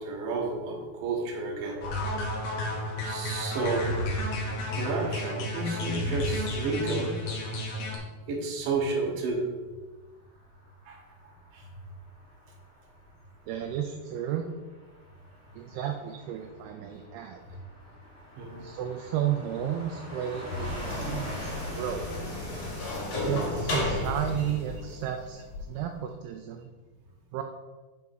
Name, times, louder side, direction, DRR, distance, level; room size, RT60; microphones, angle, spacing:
voice 1, 0.0-1.8 3.0-4.0 4.7-7.2 8.3-9.4 10.9-11.0 11.5-11.6 18.4-18.7, right 3 dB, 65° right, 0 dB, 2.5 m, -31 dB
sound 1, 1.8-8.0, left 1 dB, 75° left, 1.6 m, -32 dB
Car passing by / Truck, 10.2-24.5, right 1 dB, 40° right, 3.1 m, -46 dB
voice 2, 13.5-14.5 15.5-17.4 18.6-22.1 23.2-26.7 27.3-27.4, right 10 dB, 85° right, 4 dB, 2.4 m, -33 dB
sound 2, 20.5-25.6, left 2 dB, 50° left, 2.4 m, -33 dB
6.3 x 5.4 x 4.6 m, 1.3 s
omnidirectional pair, 4.9 m